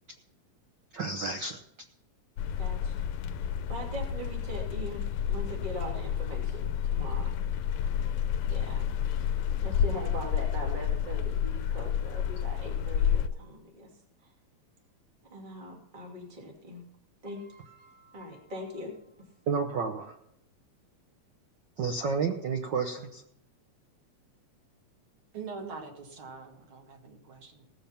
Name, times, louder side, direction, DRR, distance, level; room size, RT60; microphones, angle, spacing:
voice 1, 0.9-1.6 19.5-20.2 21.8-23.2, right 5 dB, 85° right, 4 dB, 1.0 m, -31 dB
sound 1, 2.4-13.3, left 9 dB, 80° left, 1.9 m, -30 dB
voice 2, 2.6-3.1 3.7-7.3 7.8-8.0 8.5-8.9 9.6-13.9 14.2-14.3 15.3-16.8 17.2-19.0, equal, 15° right, 0 dB, 2.5 m, -41 dB
voice 3, 25.3-27.6, right 5 dB, 45° right, 2 dB, 2.6 m, -43 dB
18.0 x 7.1 x 5.8 m, 0.76 s
omnidirectional pair, 3.4 m